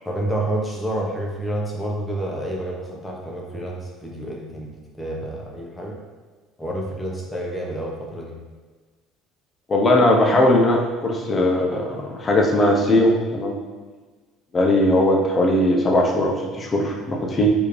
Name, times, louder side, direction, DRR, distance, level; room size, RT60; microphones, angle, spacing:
voice 1, 0.0-4.7 5.0-5.9 6.6-8.4, right 1 dB, 10° left, -2 dB, 1.1 m, -29 dB
voice 2, 9.7-13.6 14.5-17.5, left 1 dB, 30° left, 0 dB, 0.9 m, -19 dB
4.7 x 2.9 x 3.3 m, 1.4 s
supercardioid pair, 85°, 0 cm